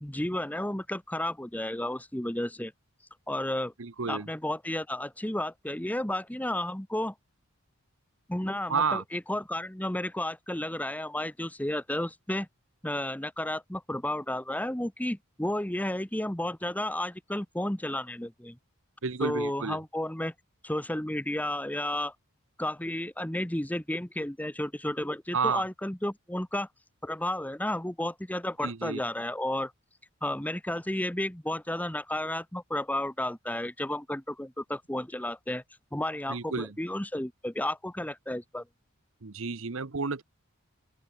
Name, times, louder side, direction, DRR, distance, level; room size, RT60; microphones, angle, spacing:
voice 1, 0.0-2.7 3.3-3.7 4.1-7.1 8.3-12.5 12.8-18.6 19.2-20.3 20.6-22.1 22.6-26.7 27.0-29.7 30.2-35.6 35.9-38.6, left 1 dB, 5° left, 1.0 m, -32 dB
voice 2, 3.8-4.3 8.7-9.0 19.0-19.8 25.3-25.6 28.6-29.0 36.3-36.7 39.2-40.2, right 5 dB, 65° right, 1.0 m, -30 dB
open air
head